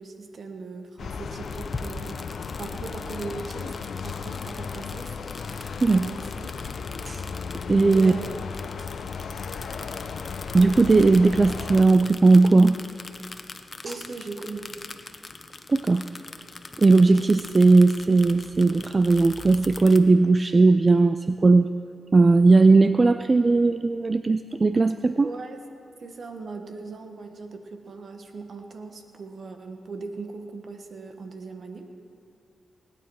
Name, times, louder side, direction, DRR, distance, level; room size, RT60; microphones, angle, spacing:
voice 1, 0.0-2.2 2.6-5.1 5.9-6.5 7.9-8.3 13.8-14.7 25.2-25.6 26.0-31.9, right 3 dB, 65° right, 5 dB, 1.3 m, -39 dB
sound 1, 1.0-11.8, left 5 dB, 75° left, 0.6 m, -35 dB
sound 2, 1.4-20.0, left 3 dB, 40° left, 1.0 m, -42 dB
voice 2, 7.7-8.1 10.5-12.8 15.7-16.0 16.8-21.7 22.1-25.3, right 3 dB, 40° right, 10 dB, 0.4 m, -18 dB
19.0 x 9.4 x 4.8 m, 2.6 s
cardioid pair, 55°, 0 cm